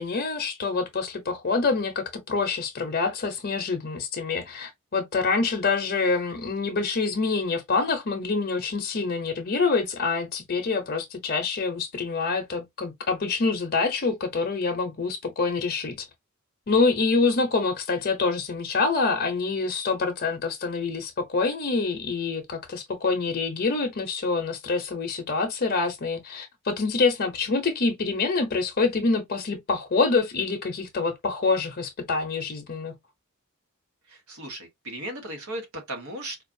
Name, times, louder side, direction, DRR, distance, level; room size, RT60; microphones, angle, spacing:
voice 1, 0.0-16.1 16.7-32.9, left 4 dB, 45° left, 0.7 m, -26 dB
voice 2, 34.1-36.4, right 1 dB, 70° right, 1.4 m, -36 dB
4.5 x 2.4 x 2.6 m
head